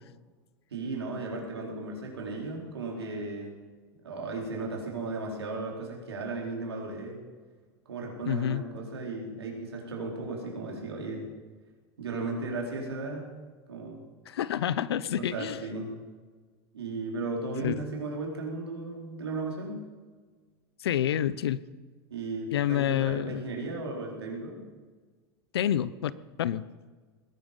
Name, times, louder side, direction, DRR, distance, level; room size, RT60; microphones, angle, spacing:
voice 1, 0.7-3.6 4.0-7.2 7.9-11.3 12.0-13.3 13.7-14.0 15.2-15.9 16.7-19.7 22.1-24.6, right 3 dB, 90° right, -1 dB, 4.5 m, -35 dB
voice 2, 8.3-8.6 14.3-15.6 17.6-17.7 20.8-21.6 22.5-23.4 25.5-26.1 26.4-26.6, left 10 dB, 85° left, 18 dB, 0.7 m, -28 dB
20.0 x 12.0 x 5.4 m, 1.4 s
hypercardioid pair, 95°, 13 cm